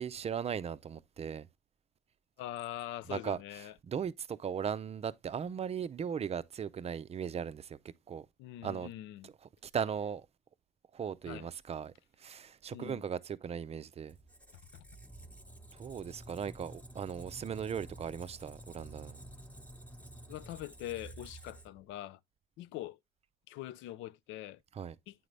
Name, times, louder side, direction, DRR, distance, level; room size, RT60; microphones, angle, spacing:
voice 1, 0.0-1.5 3.1-3.4 3.9-7.8 8.1-8.3 8.6-8.9 9.6-10.3 10.9-11.9 12.2-14.2 15.7-19.2 24.8-24.9, right 7 dB, 35° right, 0.5 m, -38 dB
voice 2, 2.4-3.7 8.4-9.3 11.3-11.5 12.7-13.0 14.7-14.8 20.3-22.2 22.6-23.0 23.5-24.6 25.1-25.3, left 14 dB, 80° left, 0.5 m, -43 dB
Squeak, 14.1-21.9, right 1 dB, 5° left, 1.0 m, -51 dB
9.1 x 3.9 x 3.2 m
cardioid pair, 95°, 19 cm